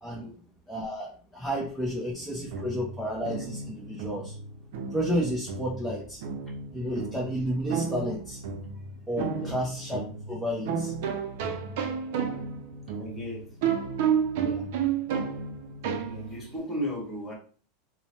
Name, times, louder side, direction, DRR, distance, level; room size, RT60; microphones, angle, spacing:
voice 1, 0.7-4.3 4.9-6.2 6.7-8.4 9.1-10.9 14.3-14.7, equal, ahead, -3 dB, 0.5 m, -31 dB
sound 1, 2.3-16.6, right 6 dB, 70° right, 0.4 m, -32 dB
voice 2, 13.0-13.5 16.0-17.3, equal, 15° left, -4 dB, 1.4 m, -35 dB
3.0 x 2.0 x 2.7 m, 0.41 s
supercardioid pair, 130°, 0 cm